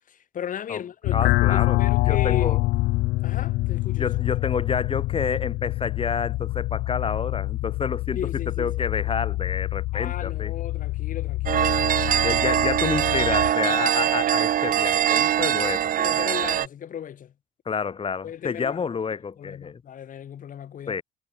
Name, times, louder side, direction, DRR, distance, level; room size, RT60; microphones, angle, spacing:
voice 1, 0.1-1.2 1.5-2.6 3.2-4.2 8.2-8.7 9.9-12.5 16.0-17.3 18.2-18.9 19.4-21.0, left 9 dB, 50° left, 6.9 m, -36 dB
sound 1, 1.0-13.5, left 19 dB, 85° left, 1.8 m, -26 dB
voice 2, 1.1-1.8 2.0-2.6 4.0-8.2 8.6-10.5 12.2-15.9 17.7-19.8 20.9-21.0, left 6 dB, 30° left, 5.7 m, -29 dB
sound 2, 11.5-16.7, right 10 dB, 55° right, 2.3 m, -22 dB
cardioid pair, 110°, 17 cm